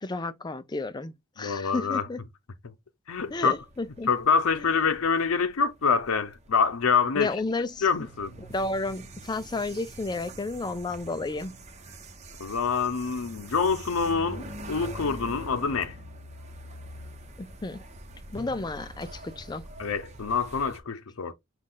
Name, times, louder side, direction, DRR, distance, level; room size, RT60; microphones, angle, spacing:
voice 1, 0.0-2.2 3.3-4.1 4.6-4.7 7.1-7.9 8.4-11.6 17.4-17.8 18.3-19.6, left 3 dB, 20° left, 0.4 m, -32 dB
voice 2, 1.4-2.0 3.1-3.5 4.1-7.3 7.8-8.3 12.4-15.9 19.8-21.3, left 5 dB, 85° left, 0.6 m, -26 dB
sound 1, 3.1-20.8, right 1 dB, 30° right, 0.9 m, -45 dB
5.8 x 2.4 x 3.8 m
head